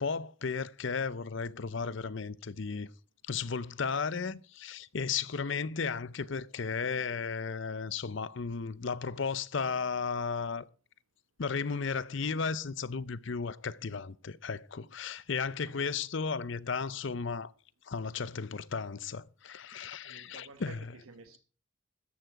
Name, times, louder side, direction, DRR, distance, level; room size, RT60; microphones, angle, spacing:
voice 1, 0.0-2.9 3.3-10.6 11.4-17.5 17.8-20.8, left 5 dB, 60° left, 0.6 m, -34 dB
voice 2, 20.0-21.4, right 3 dB, 85° right, 1.2 m, -51 dB
13.5 x 10.0 x 4.7 m
head